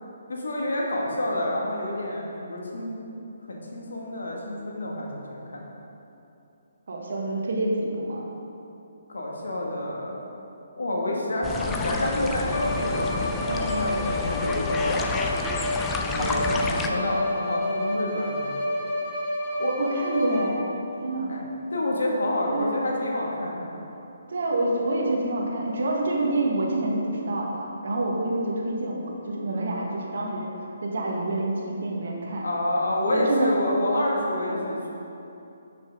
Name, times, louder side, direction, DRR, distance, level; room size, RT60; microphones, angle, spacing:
voice 1, 0.3-3.0 3.5-5.3 5.5-5.6 9.1-10.2 10.8-15.4 16.0-16.5 16.9-18.5 18.8-18.9 21.3-23.8 32.4-34.9, left 1 dB, 65° left, -2 dB, 1.7 m, -28 dB
voice 2, 6.9-8.2 16.2-17.0 19.6-20.7 21.0-21.3 22.5-22.8 24.3-32.5 33.1-33.5 34.4-34.7, right 2 dB, 55° right, -2 dB, 1.6 m, -27 dB
sound 1, 11.4-16.9, left 4 dB, 10° left, 0.5 m, -30 dB
Bowed string instrument, 12.5-20.8, left 1 dB, 30° left, 1.3 m, -29 dB
12.0 x 6.0 x 3.8 m, 2.9 s
figure-of-eight pair, 135°, 0 cm